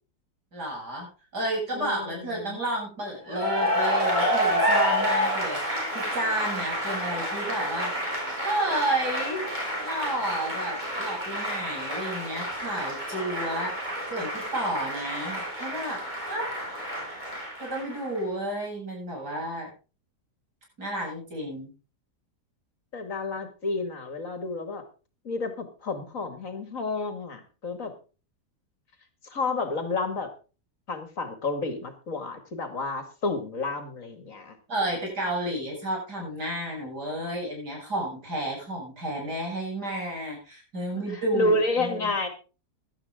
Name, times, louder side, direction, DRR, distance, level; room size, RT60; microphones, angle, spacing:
voice 1, 0.5-1.1 1.3-7.9 8.4-9.5 9.8-13.7 14.1-16.0 16.3-16.5 17.6-19.7 20.8-21.7 34.7-41.5 41.8-42.1, right 1 dB, 85° right, -2 dB, 8.7 m, -31 dB
voice 2, 1.7-2.6 22.9-24.8 25.2-27.9 29.2-30.3 30.9-34.6 41.1-42.3, left 2 dB, 55° left, 8 dB, 2.6 m, -30 dB
Cheering / Applause, 3.3-18.2, equal, 25° right, 6.2 m, -29 dB
17.0 x 12.0 x 3.7 m, 0.34 s
omnidirectional pair, 1.7 m